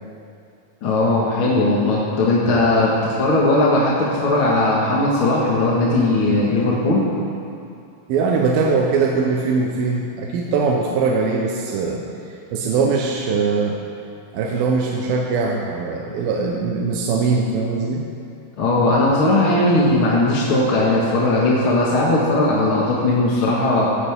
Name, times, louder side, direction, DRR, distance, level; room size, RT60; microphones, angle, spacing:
voice 1, 0.8-7.1 18.6-23.9, left 2 dB, 45° left, -5 dB, 1.9 m, -18 dB
voice 2, 8.1-12.0 12.5-13.8 14.3-18.0, right 4 dB, 75° right, -1 dB, 2.7 m, -21 dB
16.5 x 15.0 x 3.7 m, 2.6 s
omnidirectional pair, 4.5 m